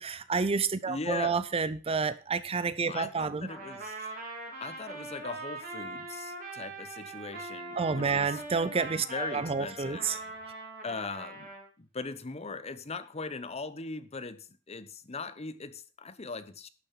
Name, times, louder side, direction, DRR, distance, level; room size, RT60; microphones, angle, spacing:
voice 1, 0.0-3.5 7.8-10.2, right 5 dB, 30° right, 0.5 m, -29 dB
voice 2, 0.9-1.4 2.9-4.0 4.6-8.4 9.1-10.1 10.8-11.5 11.8-16.7, left 4 dB, 30° left, 0.8 m, -39 dB
Trumpet, 3.4-11.7, right 3 dB, 50° right, 3.7 m, -42 dB
11.5 x 7.0 x 5.7 m
head